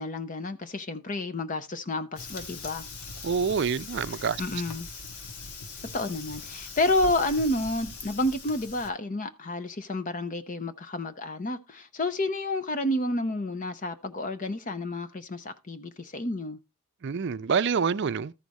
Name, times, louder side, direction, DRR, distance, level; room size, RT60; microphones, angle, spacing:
voice 1, 0.0-2.8 4.4-4.9 5.9-16.6, left 2 dB, 35° left, 0.6 m, -30 dB
Fire, 2.2-8.9, left 3 dB, 85° left, 1.6 m, -41 dB
voice 2, 3.2-4.4 17.0-18.3, right 6 dB, 50° right, 0.4 m, -27 dB
13.5 x 4.9 x 4.0 m
head